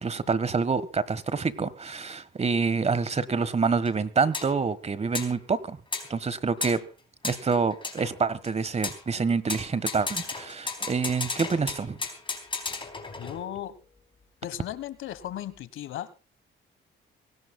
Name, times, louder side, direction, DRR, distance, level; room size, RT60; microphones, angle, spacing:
voice 1, 0.0-5.8 6.1-6.8 7.2-12.0, right 5 dB, 35° right, 1.4 m, -27 dB
sound 1, 3.8-3.9 4.3-4.5 5.1-5.4 5.9-6.1 6.6-6.8 7.2-8.5 8.8-9.0 9.5-13.6, left 4 dB, 25° left, 4.2 m, -34 dB
voice 2, 13.2-13.7 14.4-16.2, left 12 dB, 80° left, 1.4 m, -36 dB
24.5 x 18.0 x 2.3 m
cardioid pair, 90°, 20 cm